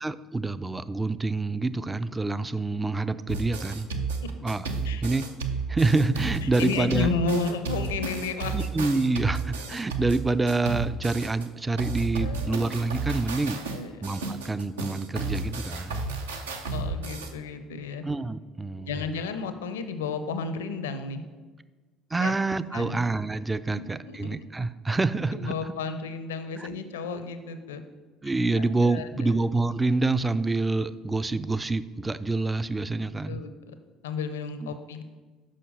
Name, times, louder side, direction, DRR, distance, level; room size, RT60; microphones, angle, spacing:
voice 1, 0.0-3.9 4.4-4.7 5.0-5.3 5.7-7.1 8.5-13.6 14.0-16.0 18.0-18.9 22.1-25.6 26.6-26.7 28.2-33.4 34.6-34.7, right 3 dB, 15° right, 14 dB, 0.3 m, -27 dB
sound 1, 3.3-11.4 11.8-17.3, right 4 dB, 75° right, 0.6 m, -32 dB
voice 2, 6.4-8.7 12.2-12.7 13.7-14.0 16.7-18.0 18.9-21.2 22.2-22.3 22.7-23.0 23.7-24.4 25.3-27.8 28.5-29.3 33.3-33.7 34.0-35.0, left 4 dB, 75° left, 10 dB, 0.5 m, -32 dB
6.4 x 5.5 x 5.4 m, 1.3 s
figure-of-eight pair, 55°, 0 cm